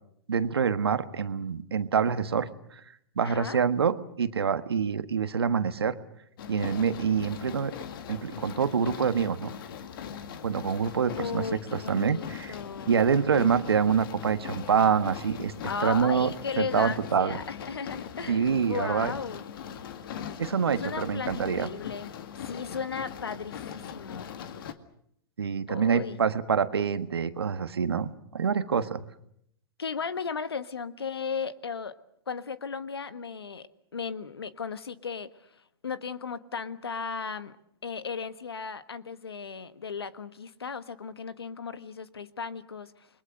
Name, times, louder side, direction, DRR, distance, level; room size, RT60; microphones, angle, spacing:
voice 1, 0.3-2.5 3.2-6.0 6.5-7.7 8.1-9.5 10.4-11.4 11.7-12.5 12.9-15.5 15.8-17.4 18.3-19.1 20.4-21.7 25.4-29.1, right 6 dB, 85° right, 11 dB, 1.5 m, -26 dB
voice 2, 3.2-3.6 11.2-12.9 15.6-19.4 20.8-24.3 25.7-26.2 29.8-31.9 32.3-37.5 37.8-43.1, left 5 dB, 90° left, 13 dB, 1.4 m, -36 dB
sound 1, 6.4-24.7, left 8 dB, 65° left, 2.0 m, -40 dB
29.0 x 22.0 x 6.5 m, 0.72 s
hypercardioid pair, 115°, 13 cm